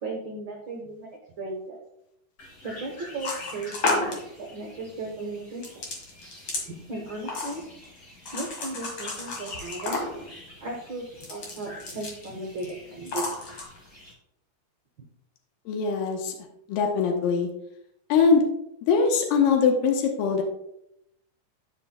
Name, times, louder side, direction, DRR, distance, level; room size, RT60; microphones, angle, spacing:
voice 1, 0.0-1.8 2.6-5.9 6.9-7.6 8.3-10.1 10.6-13.3, right 2 dB, 90° right, 0 dB, 1.0 m, -36 dB
sound 1, 2.4-14.1, left 2 dB, 30° left, 2.5 m, -47 dB
sound 2, 3.2-4.2 5.6-6.7 7.3-7.8 8.3-10.3 11.1-12.3 12.6-12.7 13.1-13.6, left 3 dB, 45° left, 2.1 m, -31 dB
voice 2, 15.7-16.4 16.7-17.5 18.1-18.4 18.9-20.4, left 5 dB, 80° left, 2 dB, 2.6 m, -22 dB
12.5 x 5.8 x 2.2 m, 0.79 s
omnidirectional pair, 4.0 m